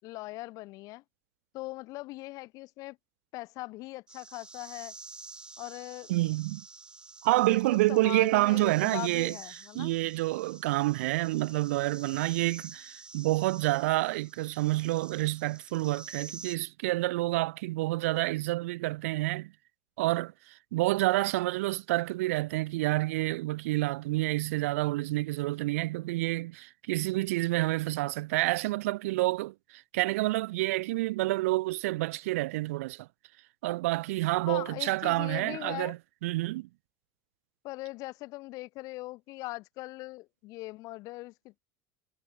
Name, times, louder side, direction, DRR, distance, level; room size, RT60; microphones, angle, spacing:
voice 1, 0.0-1.0 1.5-3.0 3.3-4.9 5.6-6.1 7.5-9.9 34.5-36.0 37.6-41.6, left 20 dB, 50° left, 6.5 m, -40 dB
sound 1, 4.1-16.6, right 3 dB, 10° right, 3.3 m, -49 dB
voice 2, 6.1-6.6 7.2-9.4 9.7-19.5 20.0-33.1 33.6-36.0 36.2-36.7, right 19 dB, 85° right, 0.6 m, -28 dB
supercardioid pair, 145°, 7 cm